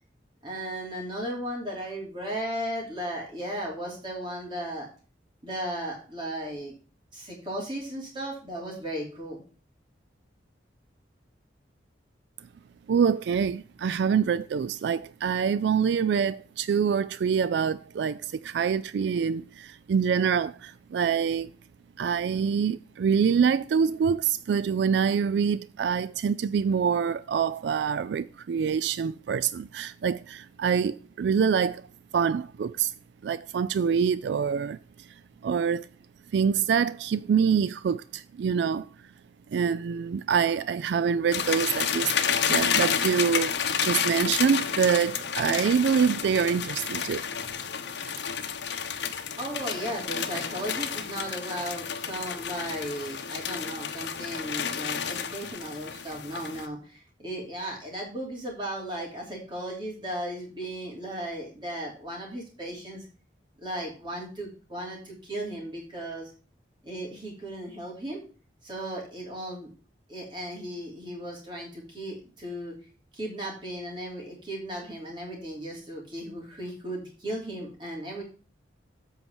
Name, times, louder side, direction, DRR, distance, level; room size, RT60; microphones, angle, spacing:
voice 1, 0.4-4.9 5.4-6.7 7.1-9.4 49.4-63.1 63.6-66.3 66.8-68.2 68.6-69.7 70.1-72.7 73.1-78.2, right 1 dB, 25° right, 2.9 m, -36 dB
voice 2, 12.9-21.5 22.0-31.8 32.1-32.9 33.2-34.8 35.4-35.9 36.3-38.9 39.5-47.2, right 6 dB, 70° right, 0.3 m, -25 dB
sound 1, 41.3-56.7, left 7 dB, 75° left, 1.0 m, -30 dB
8.2 x 4.7 x 7.1 m
head